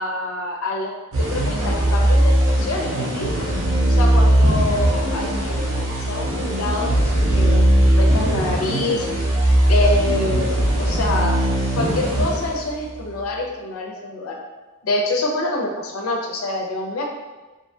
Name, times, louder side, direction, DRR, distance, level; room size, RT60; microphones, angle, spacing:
voice 1, 0.0-3.5 3.9-9.3 9.7-11.4 11.7-14.3 14.8-17.1, left 2 dB, 70° left, 1 dB, 0.5 m, -26 dB
sound 1, 1.1-13.0, right 1 dB, 70° right, 0.7 m, -19 dB
2.6 x 2.6 x 2.2 m, 1.2 s
head